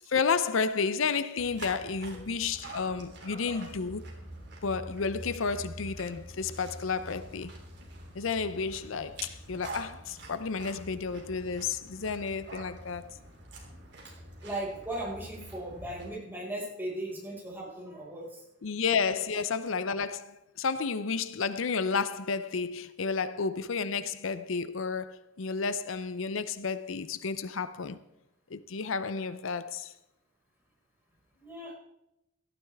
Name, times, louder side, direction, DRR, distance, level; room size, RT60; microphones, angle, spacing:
voice 1, 0.1-4.1 4.6-7.5 8.1-13.1 18.6-28.0 28.5-29.9, left 5 dB, 80° left, 0.6 m, -31 dB
sound 1, 1.4-16.1, right 1 dB, 55° right, 3.2 m, -46 dB
voice 2, 14.4-18.4 31.4-31.8, right 1 dB, 10° right, 5.2 m, -37 dB
17.5 x 12.5 x 3.5 m
head